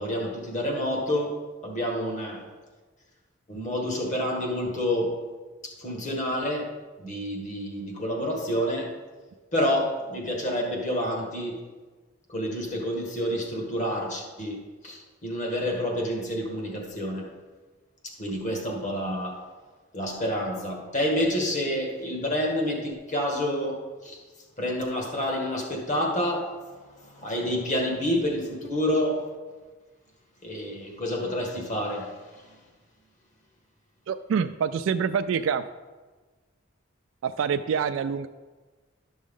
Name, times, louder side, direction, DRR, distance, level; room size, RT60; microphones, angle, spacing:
voice 1, 0.0-1.3 1.6-2.4 3.5-5.2 5.6-6.7 7.0-8.9 9.5-11.6 12.3-17.3 18.0-19.4 19.9-24.2 24.6-26.5 26.9-29.2 30.4-32.6, equal, 40° left, 0 dB, 1.7 m, -28 dB
voice 2, 34.1-35.6 37.2-38.3, right 6 dB, 75° right, 9 dB, 0.3 m, -26 dB
12.0 x 6.2 x 3.7 m, 1.3 s
head